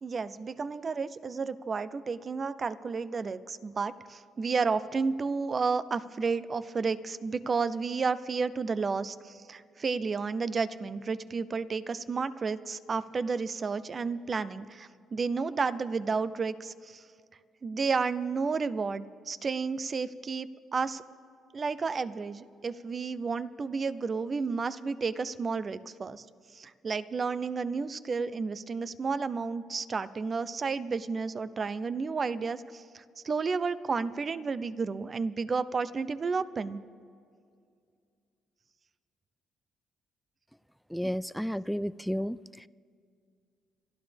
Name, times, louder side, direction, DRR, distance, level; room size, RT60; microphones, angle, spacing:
voice 1, 0.0-17.0 17.6-21.0 21.5-26.2 26.5-36.8, right 4 dB, 40° right, 15 dB, 0.6 m, -32 dB
voice 2, 40.9-42.4, equal, ahead, 18 dB, 0.3 m, -31 dB
27.0 x 12.0 x 3.5 m, 2.3 s
cardioid pair, 90°, 0 cm